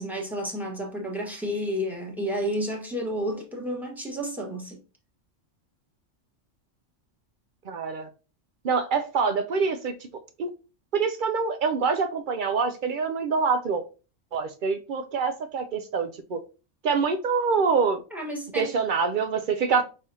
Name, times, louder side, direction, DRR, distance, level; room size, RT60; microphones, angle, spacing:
voice 1, 0.0-4.8 18.1-18.7, equal, ahead, 1.1 m, -31 dB
voice 2, 7.7-8.1 8.6-9.9 10.4-10.5 10.9-13.8 14.3-16.4 16.8-18.0 18.5-19.8, right 5 dB, 65° right, 0.5 m, -25 dB
5.3 x 3.3 x 2.7 m
omnidirectional pair, 1.3 m